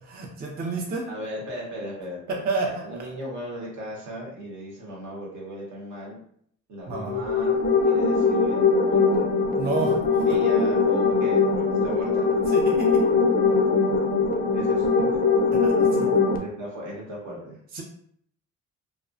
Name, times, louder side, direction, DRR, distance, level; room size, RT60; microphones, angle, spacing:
voice 1, 0.0-1.1 2.3-2.8 6.9-7.2 9.6-10.4 12.5-13.0 15.5-16.1 17.7-17.8, right 3 dB, 30° right, -1 dB, 0.4 m, -30 dB
voice 2, 1.1-6.2 6.7-9.4 10.2-12.3 14.5-15.1 16.3-17.6, equal, 70° right, -3 dB, 1.0 m, -37 dB
sound 1, 6.9-16.4, left 4 dB, 30° left, 0.4 m, -21 dB
2.4 x 2.1 x 2.5 m, 0.66 s
cardioid pair, 90°, 30 cm